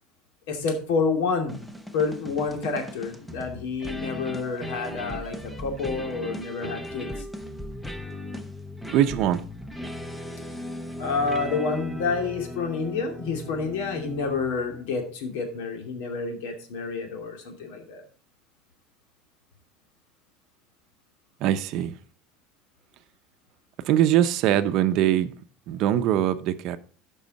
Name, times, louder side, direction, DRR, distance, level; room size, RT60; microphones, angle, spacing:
voice 1, 0.5-1.6 1.9-7.3 11.0-18.0, left 4 dB, 85° left, 2.5 m, -29 dB
sound 1, 1.5-15.0, left 1 dB, 5° left, 0.6 m, -37 dB
voice 2, 8.9-9.4 21.4-21.9 23.8-25.4 25.7-26.8, right 11 dB, 45° right, 0.6 m, -22 dB
12.5 x 5.5 x 4.0 m
cardioid pair, 165°, 0 cm